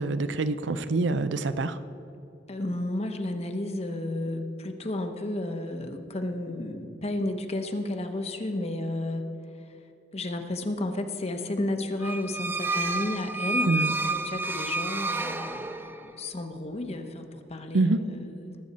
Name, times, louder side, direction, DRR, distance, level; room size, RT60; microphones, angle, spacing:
voice 1, 0.0-1.8 13.6-13.9 17.7-18.0, right 3 dB, 80° right, 13 dB, 0.6 m, -25 dB
voice 2, 2.5-9.2 10.1-18.5, left 1 dB, 35° left, 6 dB, 0.9 m, -32 dB
sound 1, 12.0-16.2, right 3 dB, 10° right, 0.5 m, -30 dB
19.5 x 7.8 x 4.2 m, 2.9 s
head